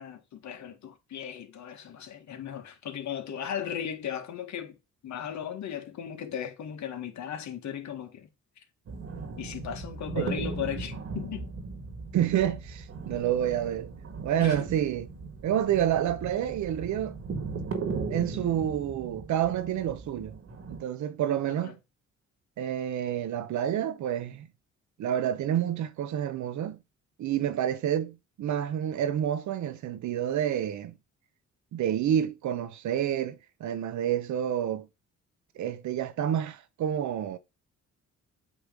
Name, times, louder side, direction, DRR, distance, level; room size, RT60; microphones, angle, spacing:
voice 1, 0.0-4.8 5.0-8.3 8.6-8.7 9.4-11.5 14.4-14.7 21.5-21.7, left 9 dB, 65° left, 1.8 m, -37 dB
sound 1, 8.9-20.8, right 4 dB, 50° right, 1.7 m, -38 dB
voice 2, 12.1-13.9 14.2-15.1 15.4-17.2 18.1-20.4 20.7-21.7 22.6-24.5 25.0-26.8 27.2-30.9 31.7-34.9 35.6-37.4, right 10 dB, 70° right, 0.9 m, -29 dB
8.5 x 3.2 x 5.3 m
cardioid pair, 90°, 30 cm